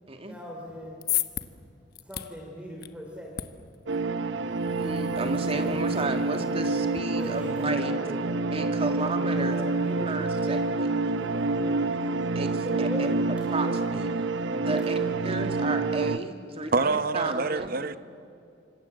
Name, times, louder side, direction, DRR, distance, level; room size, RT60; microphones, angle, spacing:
voice 1, 0.3-1.0 2.1-3.5 7.0-8.5 8.8-10.7 11.1-12.0 12.6-14.0 14.5-15.2, equal, 5° right, 0 dB, 3.3 m, -40 dB
sound 1, 0.7-7.0, left 12 dB, 55° left, 1.1 m, -37 dB
sound 2, 3.9-16.2, right 3 dB, 80° right, 0.9 m, -27 dB
voice 2, 4.8-7.9 8.5-9.6 10.1-10.6 12.4-12.9 13.5-13.7 14.7-14.9 15.2-17.7, right 2 dB, 30° right, 6 dB, 2.2 m, -33 dB
voice 3, 16.7-18.0, right 3 dB, 50° right, 13 dB, 0.9 m, -26 dB
28.0 x 25.5 x 7.9 m, 2.6 s
head